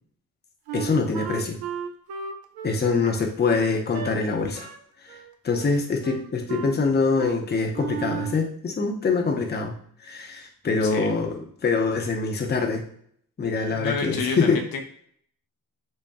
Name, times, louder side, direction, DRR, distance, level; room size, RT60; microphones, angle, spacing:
voice 1, 0.7-1.6 2.6-4.7 5.0-5.2 5.4-9.7 10.0-12.8 13.4-14.6, left 4 dB, 25° left, 2 dB, 0.7 m, -24 dB
Wind instrument woodwind instrument, 0.7-4.2 4.5-4.8 5.1-5.8 6.0-6.8 7.2-7.4 7.7-8.4, right 7 dB, 75° right, 0.6 m, -34 dB
voice 2, 13.7-14.8, left 5 dB, 65° left, 4 dB, 0.7 m, -29 dB
4.1 x 2.2 x 3.5 m, 0.63 s
cardioid pair, 80°, 38 cm